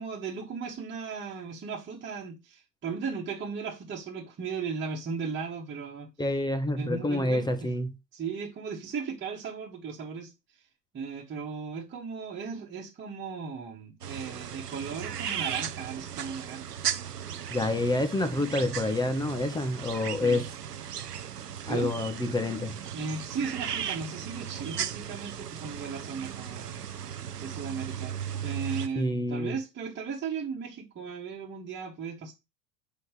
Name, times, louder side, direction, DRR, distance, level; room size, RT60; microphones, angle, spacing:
voice 1, 0.0-6.1 6.8-7.7 8.1-10.3 10.9-16.6 20.1-20.4 21.7-21.9 22.9-26.8 27.4-28.1 28.4-32.3, right 5 dB, 25° right, 2.0 m, -36 dB
voice 2, 6.2-7.9 17.5-20.5 21.7-22.7 28.9-29.6, left 2 dB, 10° left, 1.2 m, -28 dB
sound 1, 14.0-28.9, right 9 dB, 85° right, 0.8 m, -36 dB
7.7 x 5.3 x 3.3 m
figure-of-eight pair, 85°, 46 cm